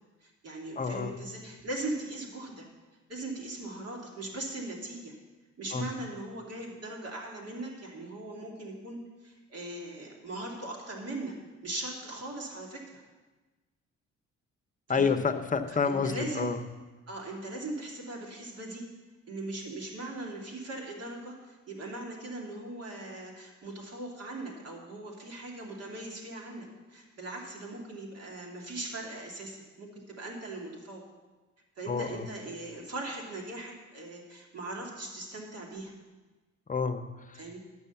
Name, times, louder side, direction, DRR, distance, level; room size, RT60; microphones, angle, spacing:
voice 1, 0.2-2.7 3.1-5.1 5.6-11.3 11.6-13.0 14.9-15.2 15.7-16.5 17.1-18.8 19.3-31.0 31.8-35.9 37.3-37.6, right 2 dB, 55° right, -1 dB, 2.7 m, -39 dB
voice 2, 0.8-1.1 5.7-5.9 14.9-16.6 31.9-32.3 36.7-37.4, left 5 dB, 25° left, 9 dB, 0.9 m, -29 dB
11.5 x 6.3 x 7.0 m, 1.2 s
cardioid pair, 90°, 30 cm